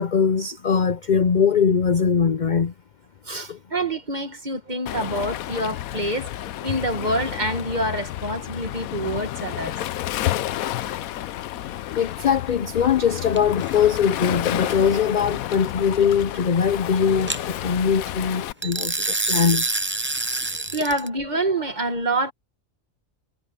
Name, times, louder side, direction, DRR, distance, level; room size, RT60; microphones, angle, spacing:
voice 1, 0.0-2.7 3.3-3.6 11.9-19.0 19.3-19.7, left 6 dB, 50° left, 0.6 m, -21 dB
voice 2, 3.7-6.3 6.6-9.7 20.7-22.3, right 1 dB, 35° right, 2.0 m, -26 dB
Waves surf, 4.9-18.5, left 13 dB, 85° left, 1.1 m, -30 dB
sound 1, 13.4-13.7 17.3-17.4 18.6-21.1, right 2 dB, 15° right, 0.3 m, -26 dB
omnidirectional pair, 1.4 m